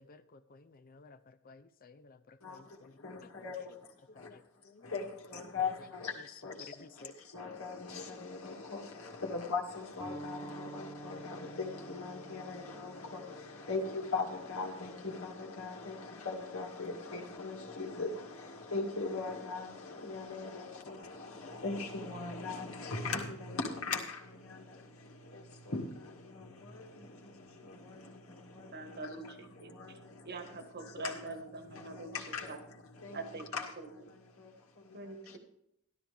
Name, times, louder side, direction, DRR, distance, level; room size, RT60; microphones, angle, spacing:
voice 1, 0.0-3.8 4.1-4.9 5.5-5.9 6.2-6.3 6.6-7.1, left 3 dB, 45° left, 0.5 m, -56 dB
voice 2, 2.4-31.2 31.7-33.2 33.5-35.0 35.3-35.4, left 4 dB, 80° left, 2.1 m, -40 dB
sound 1, 10.0-15.2, right 2 dB, 15° left, 1.3 m, -49 dB
voice 3, 28.7-32.6 33.1-33.9 34.9-35.4, right 2 dB, 50° right, 1.5 m, -45 dB
13.0 x 12.5 x 3.4 m
head